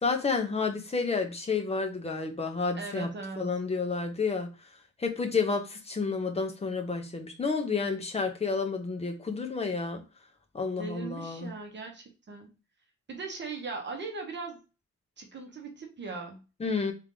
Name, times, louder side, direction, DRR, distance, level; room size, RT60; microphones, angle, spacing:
voice 1, 0.0-3.1 3.4-4.5 5.0-10.0 10.5-11.5 16.6-16.9, left 4 dB, 20° left, 4 dB, 0.8 m, -30 dB
voice 2, 2.7-3.5 10.7-12.5 13.1-14.6 15.2-16.4, right 4 dB, 40° right, 2 dB, 0.9 m, -39 dB
3.7 x 3.5 x 3.7 m, 0.31 s
wide cardioid pair, 180°, 29 cm